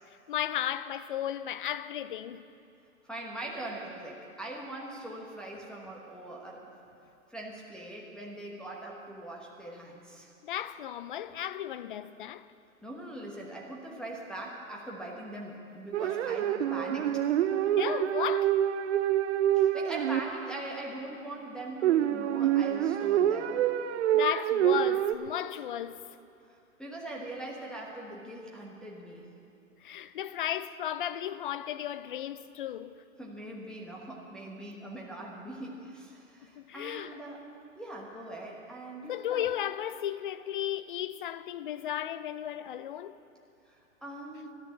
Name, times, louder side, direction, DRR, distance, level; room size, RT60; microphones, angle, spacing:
voice 1, 0.3-2.4 10.4-12.5 17.7-18.6 24.1-26.0 29.8-33.0 36.6-37.2 39.1-43.2, left 11 dB, 40° left, 0.4 m, -34 dB
voice 2, 3.0-6.7 7.3-10.3 12.8-17.2 19.5-23.6 26.5-29.3 33.2-37.4 37.8-39.5 43.7-44.5, right 1 dB, ahead, 1.2 m, -42 dB
sound 1, 15.9-20.5 21.8-25.1, right 11 dB, 55° right, 0.7 m, -27 dB
13.5 x 10.5 x 7.3 m
hypercardioid pair, 135°, 41 cm